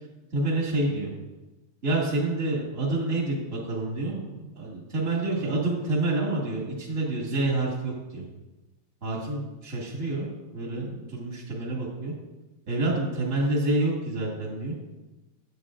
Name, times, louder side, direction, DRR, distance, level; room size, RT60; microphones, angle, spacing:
voice 1, 0.3-1.1 1.8-8.2 9.0-10.3 10.5-12.1 12.7-14.7, right 2 dB, 30° right, -5 dB, 1.4 m, -28 dB
12.5 x 8.3 x 2.5 m, 1.1 s
omnidirectional pair, 4.2 m